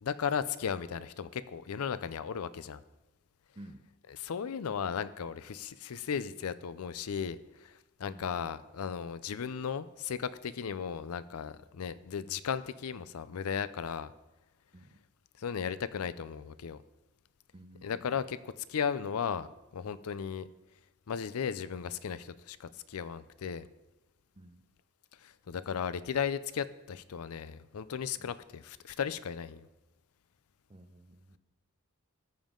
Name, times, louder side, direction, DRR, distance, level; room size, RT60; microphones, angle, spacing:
voice 1, 0.0-2.8 4.2-14.1 15.4-16.8 17.8-19.5 19.7-20.5 21.1-23.7 25.2-29.7, left 7 dB, 85° left, 15 dB, 0.5 m, -36 dB
voice 2, 3.6-3.9 8.1-8.4 14.7-15.0 17.5-18.3 24.4-24.6 28.2-28.3 30.7-31.4, right 1 dB, 25° right, 9 dB, 0.6 m, -53 dB
14.0 x 7.2 x 3.8 m, 1.1 s
head